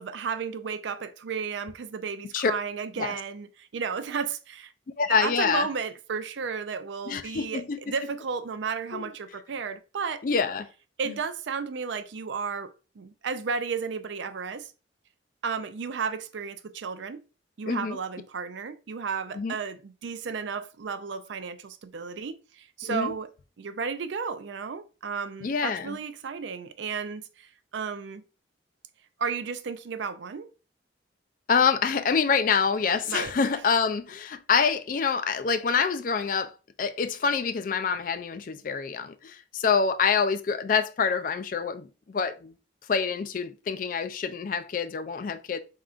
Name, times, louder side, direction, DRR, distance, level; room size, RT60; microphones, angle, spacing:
voice 1, 0.0-4.7 5.2-10.2 11.0-14.7 15.4-17.2 17.6-23.3 23.6-28.2 29.2-30.5 33.1-33.3, right 5 dB, 70° right, 0.4 m, -33 dB
voice 2, 5.0-5.7 7.1-7.8 8.9-9.1 10.2-10.7 17.7-18.0 19.4-19.5 22.8-23.1 25.4-26.0 31.5-36.5 36.8-42.5 42.9-45.6, left 6 dB, 45° left, 0.3 m, -26 dB
4.3 x 3.7 x 2.4 m
head